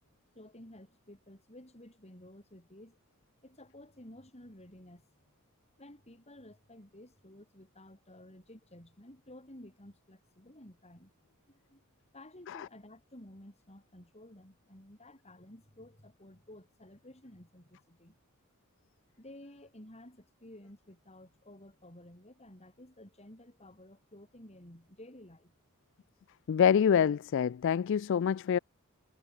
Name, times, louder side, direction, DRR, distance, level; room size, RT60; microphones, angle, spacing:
voice 1, 0.3-3.0 3.4-5.3 5.8-11.1 11.5-11.8 12.1-18.2 19.2-25.5, left 1 dB, 30° left, 5.9 m, -53 dB
voice 2, 26.5-28.6, left 8 dB, 55° left, 0.3 m, -26 dB
head